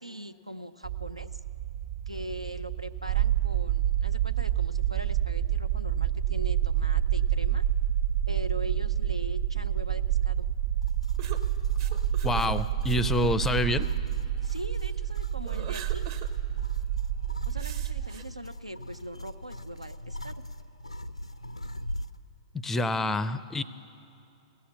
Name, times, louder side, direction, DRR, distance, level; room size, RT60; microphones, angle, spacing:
voice 1, 0.0-1.4 2.1-7.6 8.3-10.5 14.4-16.1 17.4-20.3, right 1 dB, 90° right, 11 dB, 0.5 m, -41 dB
sound 1, 0.8-18.1, right 11 dB, 55° right, 1.4 m, -28 dB
sound 2, 10.8-22.2, left 1 dB, 90° left, 0.5 m, -42 dB
sound 3, 11.2-14.5 15.0-16.3 16.7-16.8 17.6-18.2, right 8 dB, 40° right, 0.8 m, -43 dB
voice 2, 12.2-13.9 22.6-23.6, left 2 dB, 10° left, 15 dB, 0.4 m, -27 dB
17.0 x 7.1 x 9.3 m, 2.8 s
figure-of-eight pair, 110°, 3 cm